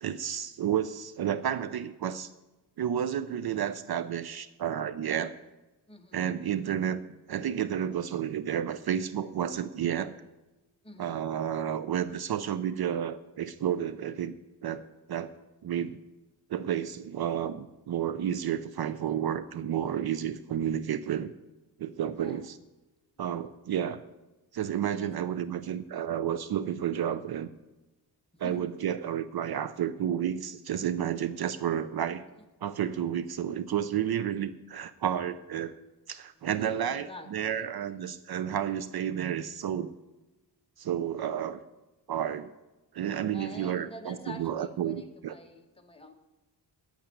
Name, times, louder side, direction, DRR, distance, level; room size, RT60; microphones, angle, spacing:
voice 1, 0.0-2.3 2.8-5.4 6.1-7.0 7.3-10.1 11.0-14.4 14.6-15.3 15.6-16.0 16.5-21.3 21.8-22.6 23.2-24.0 24.5-27.5 28.4-32.2 32.6-35.7 36.1-39.9 40.8-41.6 42.1-42.5 42.9-45.3, right 9 dB, 55° right, 13 dB, 0.5 m, -31 dB
voice 2, 5.9-6.3 10.8-11.2 22.2-22.5 25.0-25.3 28.3-28.7 36.3-37.7 43.3-46.1, left 1 dB, 10° left, 3 dB, 1.2 m, -47 dB
10.0 x 8.8 x 8.4 m, 1.1 s
wide cardioid pair, 160°, 45 cm